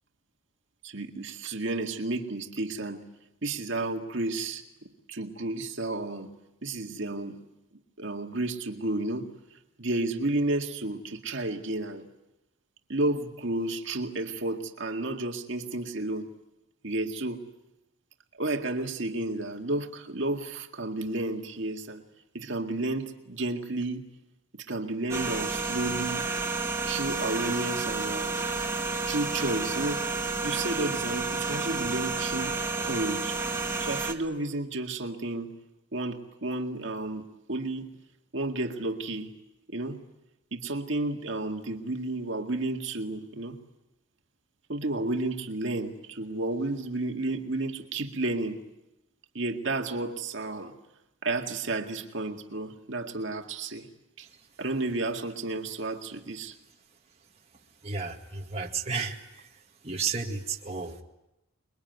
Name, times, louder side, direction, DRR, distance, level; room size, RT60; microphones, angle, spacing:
voice 1, 0.8-3.1 3.4-6.3 6.6-7.4 8.0-12.1 12.9-16.3 16.8-17.5 18.4-22.0 22.3-24.1 24.5-26.3 26.9-28.4 29.0-30.1 30.4-32.5 32.8-33.4 33.8-35.5 35.9-37.9 38.3-39.3 39.7-40.0 40.5-43.6 44.7-48.6 49.3-50.7 51.2-53.9 54.2-54.3 54.6-56.6, right 2 dB, 65° right, 3 dB, 2.1 m, -32 dB
sound 1, 25.1-34.1, right 3 dB, 15° right, 1.9 m, -30 dB
voice 2, 57.8-59.5 59.8-61.0, right 5 dB, 30° right, 0 dB, 2.1 m, -33 dB
28.0 x 21.5 x 9.4 m, 0.92 s
head